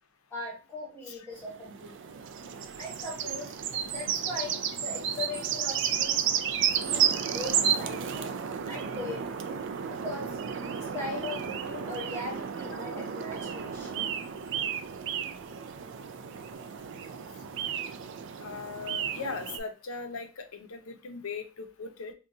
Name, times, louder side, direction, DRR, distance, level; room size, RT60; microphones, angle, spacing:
voice 1, 0.3-1.9 2.8-6.3 6.8-8.3 8.6-9.4 9.9-10.4 10.7-14.2, left 2 dB, 10° left, -4 dB, 1.1 m, -40 dB
sound 1, 1.4-19.6, right 8 dB, 60° right, 0.3 m, -32 dB
voice 2, 18.4-22.1, left 4 dB, 80° left, 7 dB, 0.6 m, -39 dB
3.9 x 2.2 x 2.6 m, 0.32 s
head